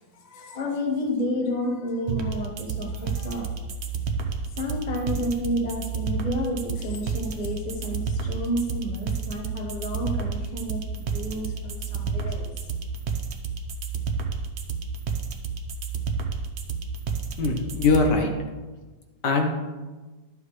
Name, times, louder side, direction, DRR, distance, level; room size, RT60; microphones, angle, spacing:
voice 1, 0.1-3.5 4.5-12.5, equal, 25° left, 1 dB, 1.0 m, -30 dB
sound 1, 2.1-18.1, right 5 dB, 60° right, 0.7 m, -30 dB
voice 2, 17.4-18.3 19.2-19.5, left 4 dB, 65° left, 2 dB, 1.6 m, -21 dB
11.5 x 7.4 x 3.2 m, 1.2 s
omnidirectional pair, 2.0 m